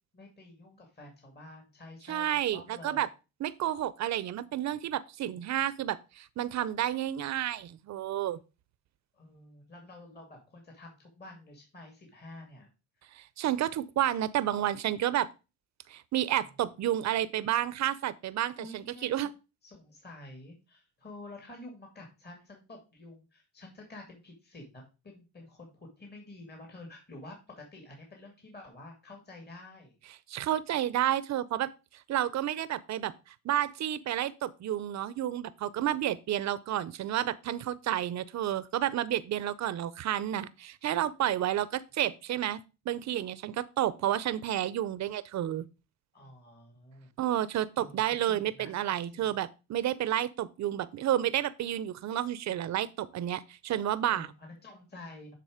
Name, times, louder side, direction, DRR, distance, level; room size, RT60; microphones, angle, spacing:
voice 1, 0.1-2.2 2.5-3.0 9.1-12.7 16.4-16.5 18.6-19.3 19.6-29.9 46.1-47.1 47.8-48.7 49.1-49.3 54.1-55.3, left 2 dB, 35° left, 2.4 m, -49 dB
voice 2, 2.1-3.1 3.4-8.4 13.1-15.3 15.9-19.3 30.3-31.7 32.1-33.1 33.4-42.6 42.9-45.7 47.2-54.3, right 12 dB, 65° right, 0.6 m, -30 dB
9.3 x 3.9 x 4.9 m
cardioid pair, 90°, 30 cm